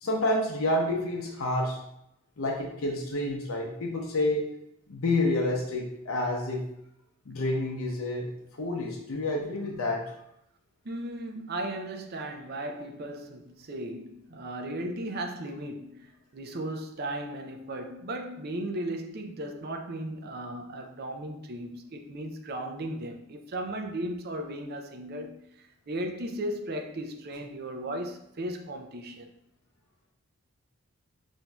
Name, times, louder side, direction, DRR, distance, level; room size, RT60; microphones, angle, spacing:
voice 1, 0.0-1.8 2.4-4.4 4.9-6.6 7.3-8.3 8.5-10.0, left 1 dB, 75° left, 0.7 m, -28 dB
voice 2, 10.8-29.3, right 1 dB, 45° right, 0.5 m, -36 dB
5.9 x 2.7 x 2.3 m
head